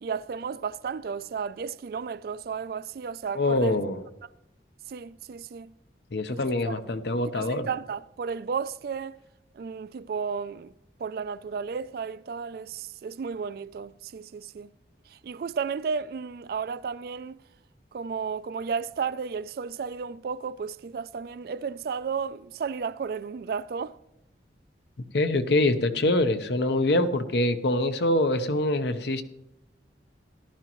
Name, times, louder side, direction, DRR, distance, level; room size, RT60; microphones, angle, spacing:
voice 1, 0.0-3.8 4.9-5.7 6.3-6.8 7.3-9.2 9.5-10.7 11.0-14.7 15.1-17.4 17.9-24.0, right 6 dB, 55° right, 0.3 m, -33 dB
voice 2, 3.3-4.0 6.1-7.7 25.1-29.2, left 2 dB, 70° left, 0.8 m, -24 dB
14.5 x 11.5 x 3.0 m
head